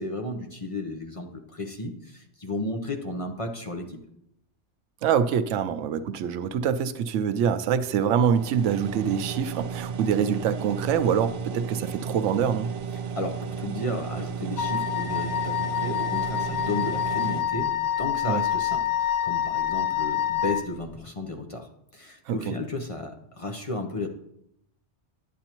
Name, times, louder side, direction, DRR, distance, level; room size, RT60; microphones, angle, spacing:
voice 1, 0.0-4.0 13.1-17.7 18.0-24.1, left 2 dB, 35° left, 0.7 m, -33 dB
voice 2, 5.0-12.7 18.3-18.4 22.3-22.6, right 8 dB, 90° right, 0.9 m, -25 dB
sound 1, 8.3-17.4, right 6 dB, 60° right, 0.7 m, -34 dB
Wind instrument woodwind instrument, 14.6-20.7, left 10 dB, 65° left, 0.8 m, -27 dB
10.5 x 7.8 x 2.9 m
omnidirectional pair, 1.2 m